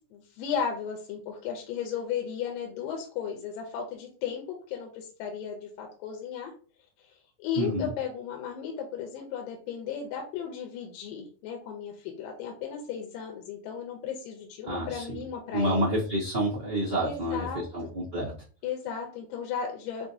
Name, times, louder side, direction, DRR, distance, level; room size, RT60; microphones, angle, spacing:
voice 1, 0.1-6.5 7.0-7.1 7.4-15.8 17.0-17.9 18.6-20.1, left 7 dB, 85° left, 1 dB, 2.4 m, -35 dB
voice 2, 7.5-7.9 14.6-15.2 15.5-17.5 17.7-18.3, right 1 dB, 35° right, -7 dB, 0.6 m, -28 dB
5.9 x 2.6 x 2.7 m, 0.38 s
omnidirectional pair, 4.0 m